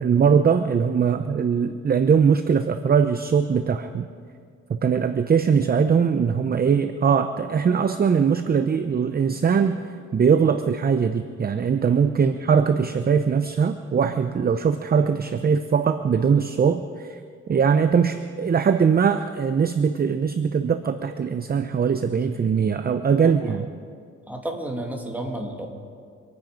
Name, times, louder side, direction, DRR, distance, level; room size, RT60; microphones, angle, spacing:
voice 1, 0.0-4.1 4.7-9.8 10.1-17.2 17.5-23.7, right 6 dB, 30° right, 9 dB, 0.7 m, -21 dB
voice 2, 24.3-25.7, right 1 dB, 5° right, 1 dB, 2.5 m, -31 dB
26.0 x 9.6 x 5.1 m, 2.1 s
cardioid pair, 90°, 30 cm